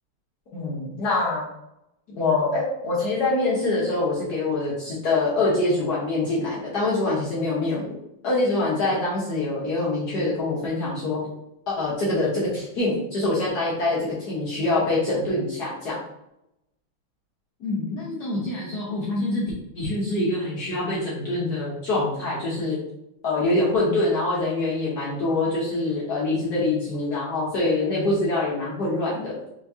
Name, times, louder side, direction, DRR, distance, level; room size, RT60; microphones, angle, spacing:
voice 1, 0.5-1.4 2.1-7.9 8.2-11.2 11.7-16.0 17.6-19.4 19.7-22.8 23.2-29.4, left 2 dB, 55° left, -7 dB, 1.3 m, -25 dB
4.6 x 2.8 x 2.7 m, 0.85 s
omnidirectional pair, 2.3 m